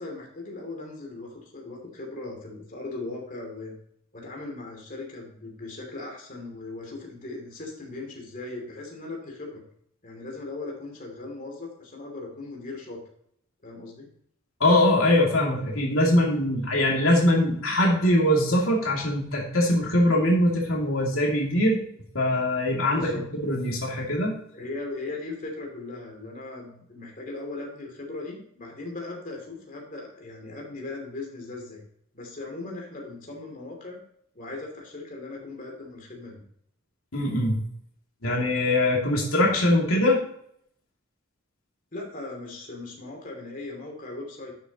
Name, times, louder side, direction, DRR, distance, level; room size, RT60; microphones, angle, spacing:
voice 1, 0.0-3.8 4.1-9.6 10.0-13.0 13.6-14.1 22.9-23.2 24.5-31.8 32.1-34.0 34.3-36.4 41.9-44.5, left 2 dB, 40° left, 0 dB, 2.9 m, -38 dB
voice 2, 14.6-21.8 22.1-24.4 37.1-37.6 38.2-40.2, left 1 dB, 85° left, -2 dB, 2.7 m, -22 dB
12.0 x 7.0 x 3.0 m, 0.68 s
head